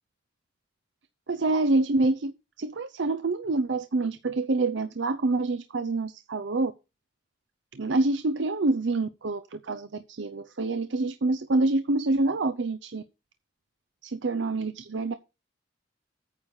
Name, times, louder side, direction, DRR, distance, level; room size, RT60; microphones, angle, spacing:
voice 1, 1.3-2.3 2.6-6.7 7.7-13.0 14.2-15.1, right 2 dB, 80° right, 0.7 m, -26 dB
9.2 x 7.1 x 4.9 m
head